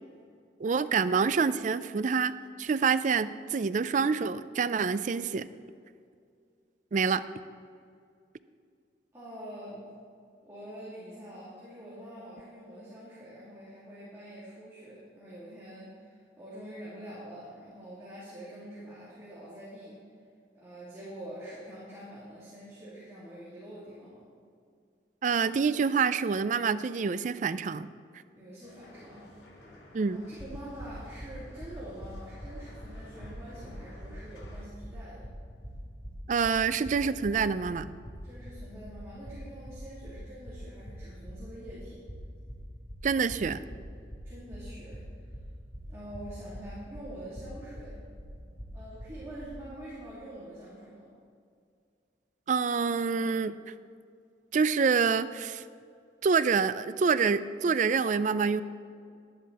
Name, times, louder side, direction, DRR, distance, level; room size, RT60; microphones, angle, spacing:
voice 1, 0.6-5.5 6.9-7.2 25.2-27.9 29.9-30.3 36.3-37.9 43.0-43.6 52.5-53.6 54.5-55.6 56.2-58.6, right 5 dB, 45° right, 14 dB, 0.4 m, -27 dB
voice 2, 9.1-9.8 10.4-20.0 20.5-24.2 28.3-29.3 30.1-35.2 38.2-42.0 44.2-45.1 45.9-48.0 48.7-51.1, right 1 dB, 15° right, -10 dB, 2.8 m, -45 dB
sound 1, 28.6-34.7, left 1 dB, 85° left, 2.0 m, -54 dB
sound 2, 30.4-49.5, equal, 40° left, 2.8 m, -44 dB
11.0 x 11.0 x 4.2 m, 2.3 s
head